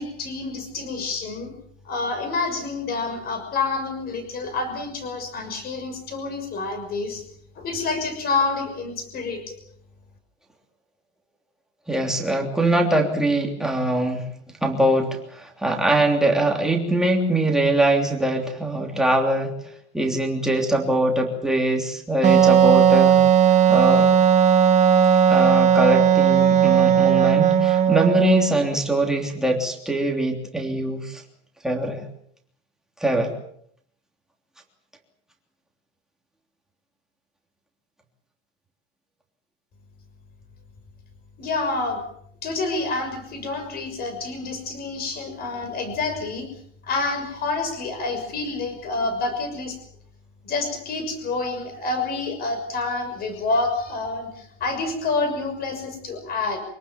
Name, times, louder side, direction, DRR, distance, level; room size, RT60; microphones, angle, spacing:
voice 1, 0.0-1.5 1.8-7.2 7.5-9.5 41.4-42.0 42.4-46.5 46.8-49.8 50.4-56.6, left 3 dB, 25° left, 8 dB, 6.3 m, -28 dB
voice 2, 11.9-14.2 14.6-19.5 19.9-23.2 23.7-24.1 25.3-31.2 31.6-32.0 33.0-33.3, right 1 dB, ahead, 1 dB, 3.1 m, -22 dB
Wind instrument woodwind instrument, 22.2-28.7, right 8 dB, 20° right, 1.8 m, -16 dB
26.0 x 18.5 x 7.3 m, 0.68 s
supercardioid pair, 175°, 37 cm